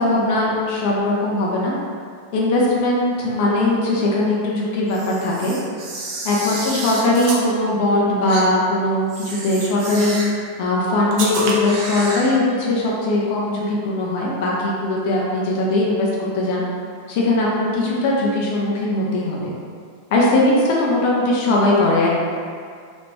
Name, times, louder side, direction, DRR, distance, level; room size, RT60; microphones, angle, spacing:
voice 1, 0.0-1.7 2.3-5.5 6.2-10.1 10.6-16.6 17.1-19.5 20.1-22.1, left 2 dB, 50° left, -4 dB, 0.5 m, -20 dB
Camera, 4.9-7.4 8.3-8.5 9.1-10.4 11.1-12.3, right 3 dB, 45° right, 0.6 m, -29 dB
3.0 x 2.5 x 3.1 m, 2.1 s
figure-of-eight pair, 90°, 0 cm